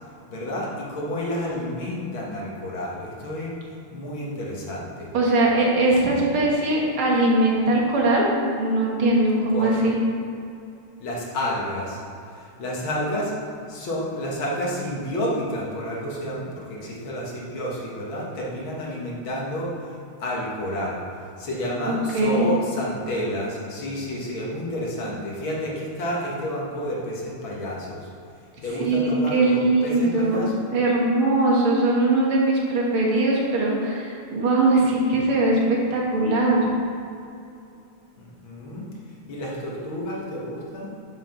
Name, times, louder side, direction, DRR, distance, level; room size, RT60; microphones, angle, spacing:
voice 1, 0.3-3.5 3.9-5.1 9.5-9.9 11.0-12.0 12.3-13.3 13.7-28.1 28.6-30.5 38.2-38.9 39.3-40.9, equal, 70° left, -4 dB, 2.4 m, -30 dB
voice 2, 5.1-10.0 21.9-22.5 28.8-30.5 30.7-36.7, right 2 dB, 80° right, -3 dB, 2.4 m, -21 dB
7.4 x 5.7 x 5.9 m, 2.6 s
omnidirectional pair, 2.3 m